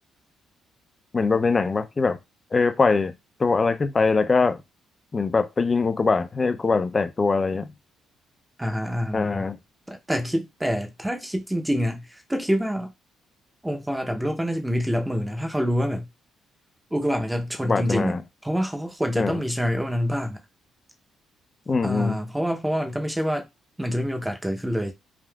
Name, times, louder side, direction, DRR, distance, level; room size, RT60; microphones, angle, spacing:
voice 1, 1.1-2.2 2.5-3.1 3.4-4.6 5.1-7.7 9.1-9.6 17.6-18.2 19.2-19.4 21.7-22.2, left 4 dB, 30° left, 0.5 m, -22 dB
voice 2, 8.6-9.5 9.9-12.9 13.6-16.1 16.9-18.2 18.4-20.4 21.8-23.5 23.8-24.9, equal, 10° right, 0.7 m, -26 dB
3.5 x 2.5 x 2.3 m
cardioid pair, 80°, 0 cm